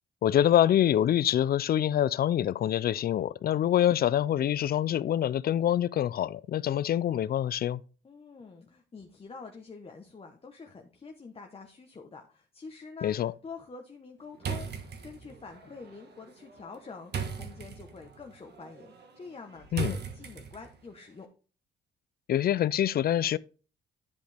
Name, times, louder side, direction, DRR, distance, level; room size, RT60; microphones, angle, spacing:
voice 1, 0.2-7.8 13.0-13.3 19.7-20.0 22.3-23.4, left 11 dB, 50° left, 0.4 m, -25 dB
voice 2, 8.0-13.1 13.4-21.3, left 4 dB, 30° left, 1.1 m, -47 dB
sound 1, 14.4-20.9, right 6 dB, 55° right, 1.5 m, -39 dB
10.5 x 5.0 x 3.4 m
cardioid pair, 90°, 20 cm